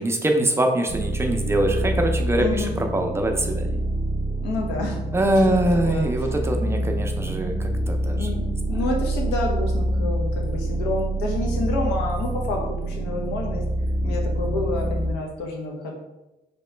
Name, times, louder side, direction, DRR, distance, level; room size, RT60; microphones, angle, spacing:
voice 1, 0.0-3.8 5.1-8.4, right 1 dB, 15° right, 3 dB, 0.4 m, -23 dB
sound 1, 0.9-15.1, right 1 dB, 45° right, 0.8 m, -26 dB
voice 2, 2.4-2.7 4.4-5.0 5.5-6.3 8.0-13.6 14.0-16.0, left 2 dB, 90° left, 1 dB, 0.8 m, -29 dB
3.0 x 2.9 x 3.2 m, 0.96 s
cardioid pair, 110°, 17 cm